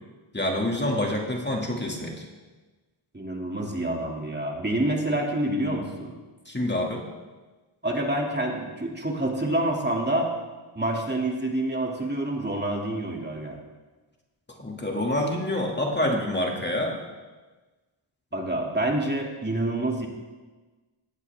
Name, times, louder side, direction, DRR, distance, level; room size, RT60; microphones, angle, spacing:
voice 1, 0.3-2.2 6.5-7.0 14.6-17.0, left 1 dB, 20° left, 0 dB, 2.4 m, -27 dB
voice 2, 3.1-6.1 7.8-10.3 10.7-13.6 18.3-20.1, right 1 dB, 20° right, 0 dB, 2.7 m, -27 dB
19.0 x 15.0 x 3.6 m, 1.3 s
cardioid pair, 75°, 50 cm